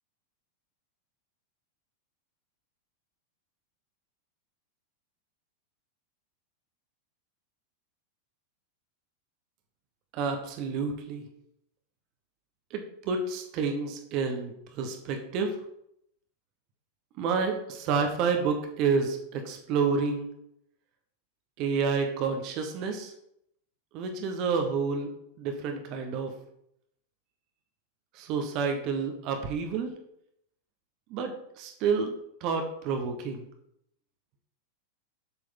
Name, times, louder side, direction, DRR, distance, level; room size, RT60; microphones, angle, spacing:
voice 1, 10.1-11.2 12.7-15.5 17.2-20.3 21.6-23.1 23.9-25.1 25.4-26.3 28.1-29.9 31.1-32.1 32.4-33.4, right 5 dB, 40° right, 5 dB, 1.2 m, -29 dB
7.9 x 6.6 x 3.8 m, 0.75 s
figure-of-eight pair, 90°, 0 cm